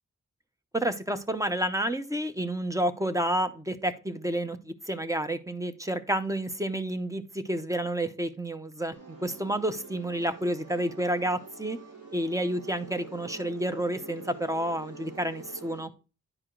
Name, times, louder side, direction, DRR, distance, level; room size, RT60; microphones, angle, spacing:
voice 1, 0.7-11.8 12.1-15.9, right 1 dB, 10° right, 9 dB, 0.6 m, -30 dB
sound 1, 8.9-15.8, right 3 dB, 70° right, 3.7 m, -46 dB
9.9 x 4.8 x 3.7 m, 0.33 s
wide cardioid pair, 125°, 31 cm